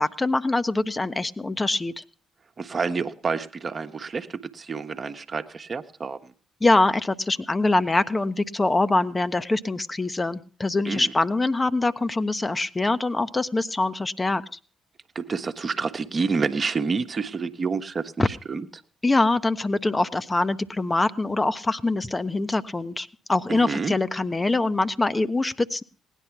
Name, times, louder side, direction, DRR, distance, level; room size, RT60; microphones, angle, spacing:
voice 1, 0.0-2.0 6.6-14.6 18.2-18.3 19.0-25.8, left 2 dB, 25° left, 12 dB, 0.9 m, -24 dB
voice 2, 2.6-6.3 10.9-11.1 15.1-18.7 23.5-23.9, right 5 dB, 40° right, 8 dB, 1.1 m, -28 dB
18.0 x 10.0 x 5.9 m, 0.42 s
figure-of-eight pair, 40°, 0 cm